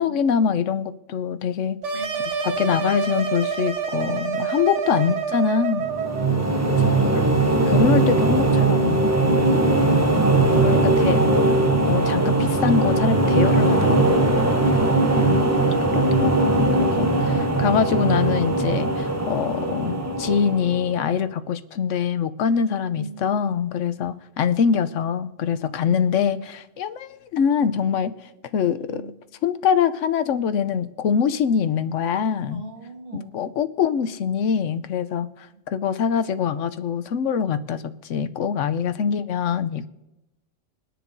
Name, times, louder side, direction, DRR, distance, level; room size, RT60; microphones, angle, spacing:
voice 1, 0.0-2.1 2.4-5.8 6.7-7.2 7.7-9.2 10.6-11.2 11.9-14.3 14.8-14.9 15.1-15.4 15.9-28.1 28.5-29.1 29.4-32.6 33.1-35.3 35.7-37.8 38.1-39.9, left 7 dB, 80° left, 10 dB, 1.0 m, -24 dB
sound 1, 1.8-6.3, right 6 dB, 70° right, 1.3 m, -27 dB
voice 2, 1.9-2.3 5.1-5.2 6.6-7.3 22.9-23.6 25.8-26.5 28.8-29.2 32.5-33.3 35.5-35.6 39.0-39.1 39.4-39.6, right 3 dB, 55° right, 0 dB, 2.3 m, -39 dB
sound 2, 5.8-21.1, right 2 dB, 15° right, 0.6 m, -20 dB
23.0 x 10.0 x 2.7 m, 0.95 s
omnidirectional pair, 1.3 m